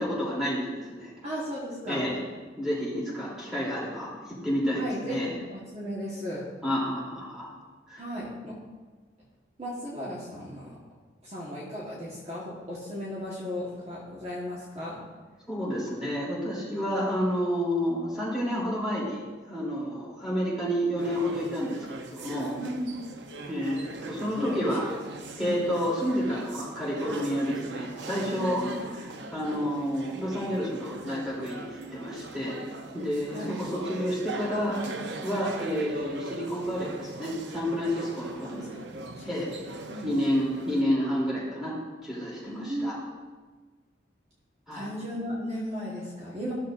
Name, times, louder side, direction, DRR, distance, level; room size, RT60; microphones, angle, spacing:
voice 1, 0.0-1.1 1.9-2.1 2.6-5.3 6.6-7.5 7.9-8.0 15.5-22.5 23.5-24.9 25.3-28.6 29.3-32.6 32.9-34.8 35.2-38.7 39.2-39.5 40.0-41.7 42.0-43.0 44.7-44.9, equal, ahead, -7 dB, 3.0 m, -30 dB
voice 2, 1.2-2.1 4.7-6.5 8.0-8.6 9.6-10.8 11.2-15.0 22.5-23.0 24.4-24.8 25.4-25.6 28.3-28.8 33.3-33.6 38.4-39.3 39.9-40.1 42.5-43.0 44.7-46.5, equal, 35° right, -6 dB, 1.3 m, -36 dB
sound 1, 21.0-40.8, right 2 dB, 70° right, 0.6 m, -41 dB
14.5 x 6.6 x 2.5 m, 1.4 s
head